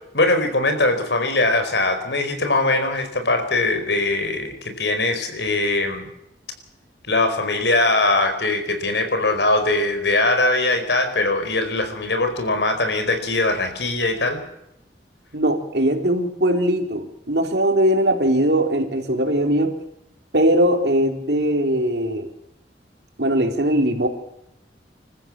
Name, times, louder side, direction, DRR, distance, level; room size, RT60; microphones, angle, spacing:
voice 1, 0.1-6.1 7.1-14.4, left 2 dB, 75° left, 7 dB, 4.5 m, -21 dB
voice 2, 15.3-19.7 20.3-22.3 23.2-24.1, right 1 dB, 65° right, 5 dB, 3.5 m, -20 dB
27.0 x 14.5 x 7.5 m, 0.83 s
head